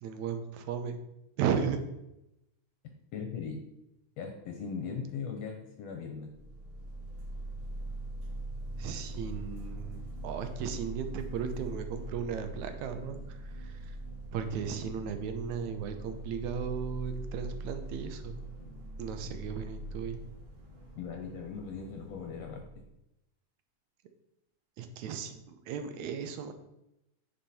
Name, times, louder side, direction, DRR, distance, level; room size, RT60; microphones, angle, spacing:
voice 1, 0.0-1.0 1.4-1.8 8.8-14.0 14.3-18.4 19.0-20.2 24.8-26.5, right 7 dB, 75° right, 8 dB, 2.2 m, -36 dB
voice 2, 3.1-3.6 4.2-6.3 21.0-22.8, left 6 dB, 70° left, 3 dB, 1.9 m, -39 dB
sound 1, 6.3-22.9, right 2 dB, 50° right, 2.5 m, -42 dB
9.8 x 5.6 x 4.3 m, 0.88 s
omnidirectional pair, 3.4 m